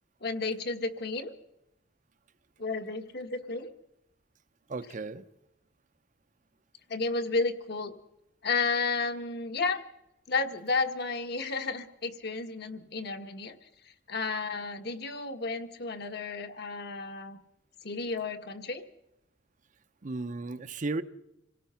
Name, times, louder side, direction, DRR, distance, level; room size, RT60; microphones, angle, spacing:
voice 1, 0.2-1.3 2.6-3.7 6.9-7.9 8.4-9.8 10.3-13.6 14.1-17.4 17.8-18.8, left 4 dB, 55° left, 1.5 m, -32 dB
voice 2, 4.7-5.3 20.0-21.0, right 3 dB, 40° right, 0.7 m, -34 dB
26.5 x 17.5 x 5.7 m
head